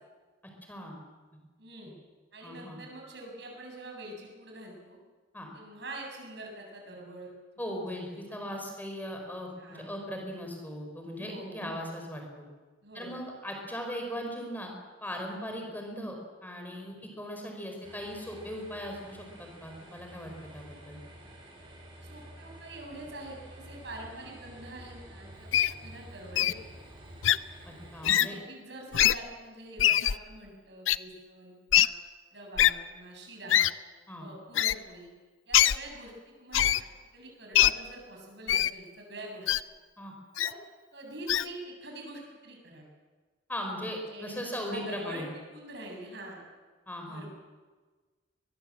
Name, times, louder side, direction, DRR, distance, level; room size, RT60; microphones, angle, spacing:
voice 1, 1.6-1.9 2.3-5.0 5.5-7.3 8.1-8.2 9.6-9.9 11.1-11.7 12.8-13.2 15.5-15.7 16.9-17.1 22.0-26.8 28.1-31.9 32.3-33.6 34.2-35.1 35.5-36.7 37.1-39.5 40.4-40.6 40.9-42.9 44.1-45.2 45.5-46.4 47.0-47.3, right 1 dB, 60° right, 1 dB, 7.6 m, -45 dB
voice 2, 2.4-2.8 5.3-5.5 7.6-12.5 12.9-14.7 15.0-16.1 16.4-21.0 27.6-28.4 34.1-34.3 40.0-40.1 43.5-45.3 46.9-47.3, equal, 10° left, 2 dB, 4.8 m, -38 dB
sound 1, 17.8-28.0, right 1 dB, 25° right, 5.9 m, -49 dB
Wild animals, 25.5-25.7 26.4-26.5 27.2-27.4 28.0-28.3 28.9-29.1 29.8-30.2 30.9-31.0 31.7-31.9 32.6-32.7 33.5-33.7 34.5-34.7 35.5-35.8 36.5-36.8 37.5-37.7 38.5-38.7 39.5-39.6 40.4-40.5 41.3-41.5, left 11 dB, 80° left, 0.6 m, -22 dB
22.5 x 20.5 x 7.6 m, 1.3 s
head